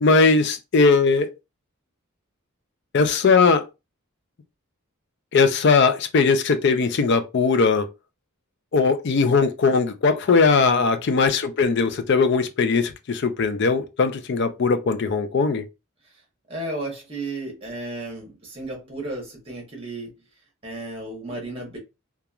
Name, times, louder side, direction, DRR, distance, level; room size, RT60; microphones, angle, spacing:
voice 1, 0.0-1.3 2.9-3.6 5.3-7.9 8.7-15.6, left 4 dB, 55° left, 0.4 m, -19 dB
voice 2, 16.5-20.1 20.6-21.8, right 2 dB, 25° right, 1.1 m, -34 dB
2.9 x 2.3 x 2.3 m
head